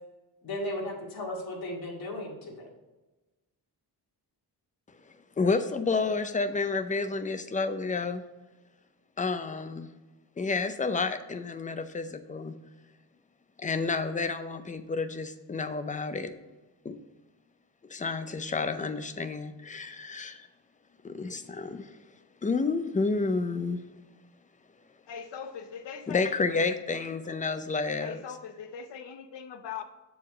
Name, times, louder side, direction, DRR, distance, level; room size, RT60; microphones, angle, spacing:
voice 1, 0.4-2.7, left 1 dB, 60° left, -2 dB, 2.2 m, -35 dB
voice 2, 5.4-8.2 9.2-9.9 10.4-12.6 13.6-16.3 16.8-17.0 17.9-20.5 21.0-22.0 22.4-23.8 26.1-28.2, left 4 dB, 20° left, 10 dB, 0.5 m, -30 dB
voice 3, 25.1-26.3 28.0-29.8, left 7 dB, 90° left, 8 dB, 0.8 m, -40 dB
7.1 x 4.7 x 4.8 m, 1.1 s
wide cardioid pair, 130°, 41 cm